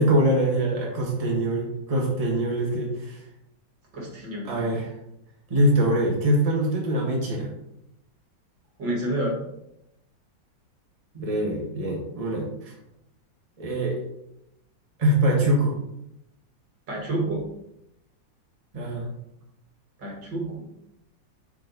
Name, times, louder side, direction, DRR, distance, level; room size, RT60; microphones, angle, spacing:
voice 1, 0.0-3.2 4.4-4.9 5.5-7.5 11.1-12.7 13.6-14.0 15.0-15.7 18.7-19.1, right 1 dB, 20° right, -2 dB, 1.6 m, -23 dB
voice 2, 3.9-4.5 8.8-9.4 16.9-17.4 20.0-20.7, right 1 dB, 70° right, -1 dB, 2.5 m, -29 dB
9.6 x 4.6 x 4.1 m, 0.82 s
omnidirectional pair, 2.0 m